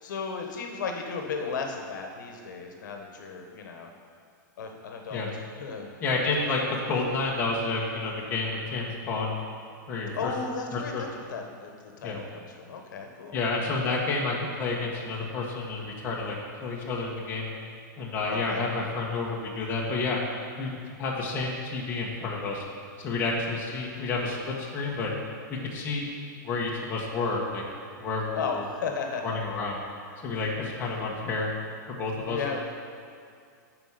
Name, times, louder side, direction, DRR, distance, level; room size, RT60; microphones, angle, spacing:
voice 1, 0.0-3.9 4.6-5.9 10.1-13.4 18.3-18.6 28.3-29.4 32.3-32.6, left 5 dB, 70° left, 3 dB, 1.2 m, -35 dB
voice 2, 6.0-9.3 9.9-10.3 10.7-11.2 12.0-12.2 13.3-17.5 18.0-20.2 20.6-22.6 23.0-25.1 25.5-26.1 26.4-27.6 28.0-28.7 29.2-29.8 30.2-31.5 32.0-32.4, left 3 dB, 20° left, -4 dB, 1.2 m, -30 dB
10.5 x 4.8 x 5.8 m, 2.3 s
supercardioid pair, 165°, 10 cm